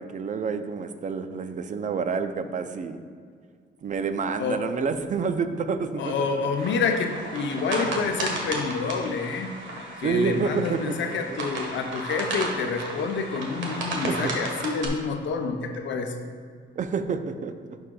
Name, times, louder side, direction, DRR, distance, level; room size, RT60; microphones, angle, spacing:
voice 1, 0.0-3.0 3.8-6.5 10.0-11.2 14.1-14.3 16.8-17.5, right 5 dB, 40° right, 9 dB, 0.5 m, -28 dB
voice 2, 4.4-4.7 6.0-9.5 10.0-16.1, left 5 dB, 70° left, 5 dB, 0.7 m, -28 dB
sound 1, 6.6-14.9, right 2 dB, 70° right, 1.4 m, -34 dB
11.0 x 4.8 x 2.3 m, 2.1 s
cardioid pair, 90°, 20 cm